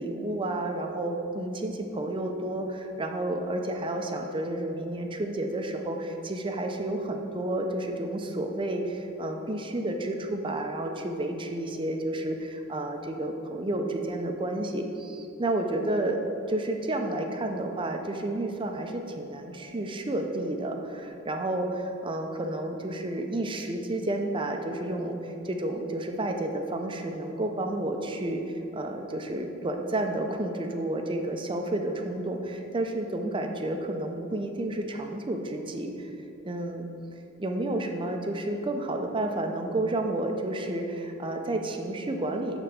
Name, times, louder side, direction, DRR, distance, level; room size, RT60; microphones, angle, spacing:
voice 1, 0.0-16.2 16.5-36.1 36.4-36.9 37.4-42.6, right 1 dB, 25° right, 3 dB, 0.6 m, -31 dB
7.7 x 4.0 x 6.7 m, 2.8 s
head